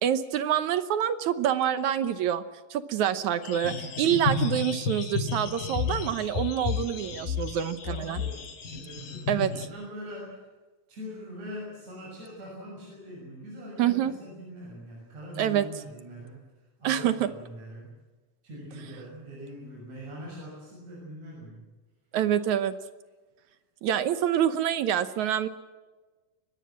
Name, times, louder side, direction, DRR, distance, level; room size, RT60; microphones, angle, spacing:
voice 1, 0.0-2.4 2.7-8.2 9.3-9.5 13.8-14.1 15.4-15.7 16.8-17.3 22.1-22.7 23.8-25.5, right 10 dB, 70° right, 12 dB, 2.0 m, -26 dB
sound 1, 3.4-9.7, left 5 dB, 75° left, 4.7 m, -32 dB
voice 2, 7.8-10.5 10.9-16.4 16.8-17.9 18.4-21.7, equal, 50° right, -3 dB, 7.8 m, -42 dB
23.5 x 20.0 x 7.5 m, 1.3 s
omnidirectional pair, 4.1 m